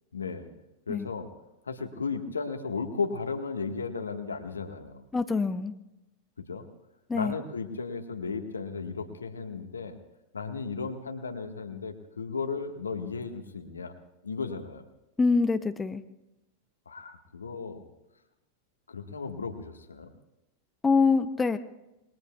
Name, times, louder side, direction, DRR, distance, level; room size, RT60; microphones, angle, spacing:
voice 1, 0.1-0.5 0.9-1.3 1.6-5.0 6.5-6.6 7.1-10.0 10.3-13.9 14.2-14.8 16.8-17.9 18.9-20.1, left 4 dB, 75° left, 6 dB, 1.6 m, -35 dB
voice 2, 5.1-5.7 7.1-7.3 15.2-16.0 20.8-21.6, left 4 dB, 15° left, 10 dB, 0.7 m, -24 dB
27.5 x 21.5 x 2.4 m, 0.95 s
figure-of-eight pair, 90°, 0 cm